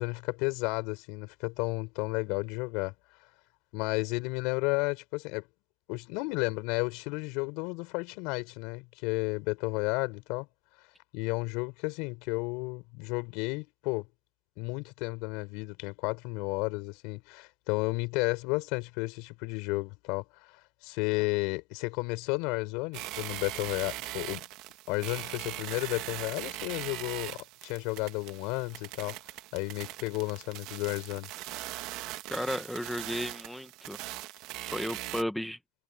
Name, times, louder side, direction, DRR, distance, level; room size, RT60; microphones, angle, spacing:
voice 1, 0.0-2.9 3.7-5.4 5.9-10.5 11.1-14.1 14.6-20.2 20.8-24.5 24.9-27.4 27.6-29.1 29.5-31.3, left 28 dB, 70° left, 6.8 m, -32 dB
sound 1, 22.9-35.2, right 18 dB, 65° right, 1.6 m, -41 dB
voice 2, 32.3-34.0 34.6-35.6, equal, ahead, 1.4 m, -34 dB
supercardioid pair, 130°, 0 cm